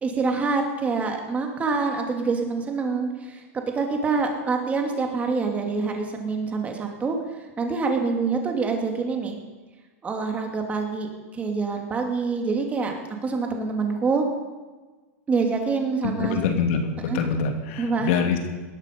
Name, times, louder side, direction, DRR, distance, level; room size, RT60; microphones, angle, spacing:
voice 1, 0.0-9.4 10.0-12.9 13.2-14.3 15.3-16.4 17.1-17.2 17.8-18.1, right 4 dB, 15° right, 2 dB, 2.7 m, -26 dB
voice 2, 16.2-18.5, left 6 dB, 60° left, 4 dB, 2.7 m, -25 dB
18.5 x 13.0 x 5.4 m, 1.3 s
supercardioid pair, 135°, 8 cm